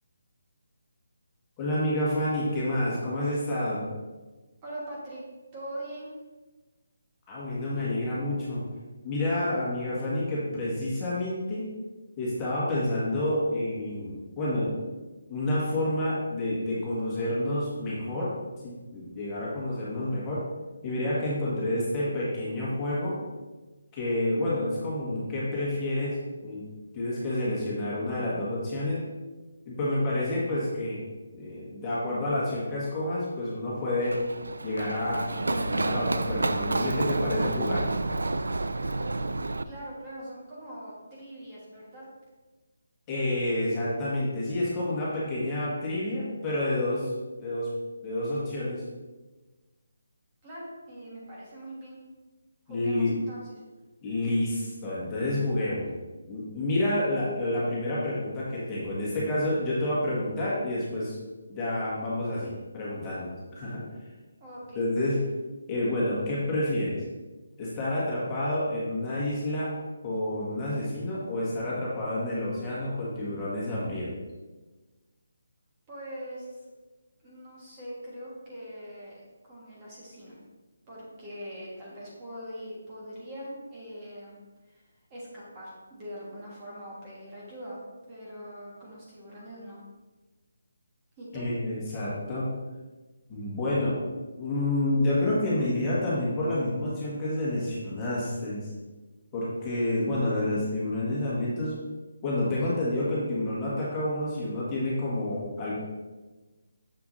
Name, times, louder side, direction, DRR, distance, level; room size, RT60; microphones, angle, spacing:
voice 1, 1.6-3.9 7.3-8.6 9.0-11.7 12.2-14.7 15.3-18.3 18.6-20.4 20.8-23.1 23.9-26.2 26.4-26.6 26.9-29.0 29.7-31.0 31.3-34.2 34.6-38.0 43.1-47.1 47.4-47.7 48.0-48.8 52.7-53.2 54.0-55.9 56.3-61.2 61.5-63.8 64.7-65.2 65.7-67.0 67.6-69.7 70.0-74.2 91.3-92.5 93.3-94.0 94.4-98.7 99.3-101.8 102.2-105.7, left 1 dB, 15° left, -8 dB, 1.8 m, -29 dB
voice 2, 4.6-5.2 5.5-6.1 39.6-42.0 50.4-52.0 52.7-53.6 64.4-64.8 75.9-76.6 77.2-79.2 79.5-80.4 80.9-84.4 84.7-84.8 85.1-87.8 88.1-89.8 91.2-91.4, equal, 20° right, -6 dB, 1.7 m, -42 dB
Run, 34.0-39.6, right 2 dB, 90° right, 0.4 m, -29 dB
7.0 x 6.7 x 2.8 m, 1.2 s
hypercardioid pair, 165°, 0 cm